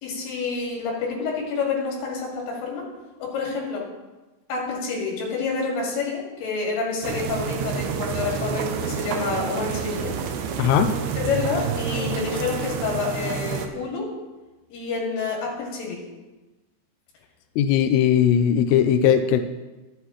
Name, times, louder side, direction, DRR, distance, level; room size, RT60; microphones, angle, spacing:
voice 1, 0.0-2.8 3.2-3.8 4.5-10.2 11.1-14.1 14.7-16.0, left 4 dB, 65° left, -3 dB, 4.1 m, -28 dB
sound 1, 7.0-13.7, right 7 dB, 75° right, 2.4 m, -29 dB
voice 2, 10.6-10.9 17.6-19.4, left 9 dB, 85° left, 8 dB, 2.3 m, -19 dB
12.5 x 8.4 x 3.2 m, 1.1 s
omnidirectional pair, 5.3 m